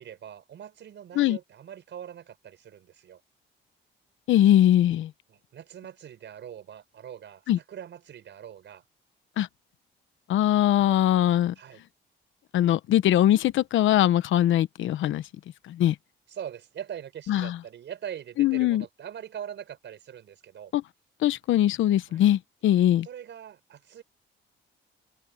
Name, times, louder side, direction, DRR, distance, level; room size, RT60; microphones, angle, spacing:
voice 1, 0.0-3.2 5.3-8.8 10.8-10.9 11.6-11.8 16.3-20.7 22.1-22.2 23.0-24.0, right 9 dB, 65° right, 6.2 m, -42 dB
voice 2, 4.3-5.1 7.5-7.6 9.4-9.5 10.3-11.5 12.5-15.2 15.7-15.9 17.3-17.5 18.4-18.8 20.7-20.8 21.2-23.1, left 12 dB, 80° left, 1.0 m, -21 dB
cardioid pair, 90°, 20 cm